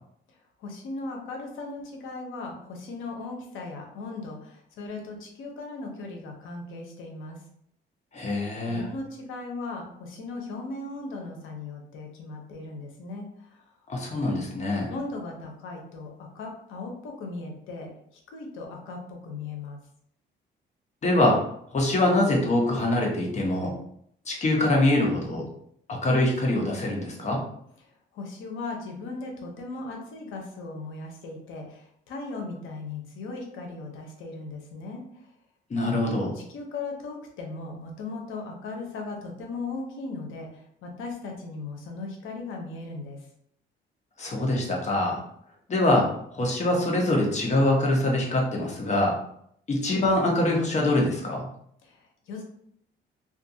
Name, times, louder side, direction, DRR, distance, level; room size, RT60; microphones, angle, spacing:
voice 1, 0.6-7.4 8.7-13.6 14.9-17.9 18.3-19.8 28.1-35.2 36.3-43.2 51.8-52.4, left 3 dB, 85° left, 2 dB, 0.7 m, -37 dB
voice 2, 8.1-8.8 13.9-14.9 21.0-21.4 21.7-23.8 24.3-25.5 25.9-27.5 35.7-36.4 44.2-45.2 45.7-49.2 49.7-51.5, left 1 dB, 35° left, -1 dB, 0.9 m, -24 dB
2.5 x 2.4 x 2.6 m, 0.69 s
cardioid pair, 90°, 20 cm